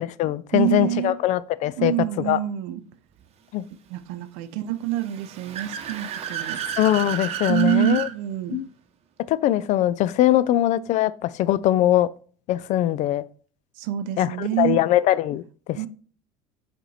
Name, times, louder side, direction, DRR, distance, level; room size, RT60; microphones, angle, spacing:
voice 1, 0.0-1.9 2.2-2.4 3.5-3.6 6.8-8.1 8.5-8.7 9.3-12.1 12.5-13.2 14.2-15.4 15.7-15.9, left 13 dB, 55° left, 0.4 m, -21 dB
voice 2, 0.5-1.2 1.8-2.8 3.9-6.6 7.5-8.6 13.8-14.8 15.7-15.9, right 14 dB, 75° right, 0.7 m, -26 dB
Car / Accelerating revving vroom, 4.9-8.1, right 8 dB, 45° right, 0.8 m, -32 dB
5.4 x 4.4 x 4.1 m
supercardioid pair, 105°, 15 cm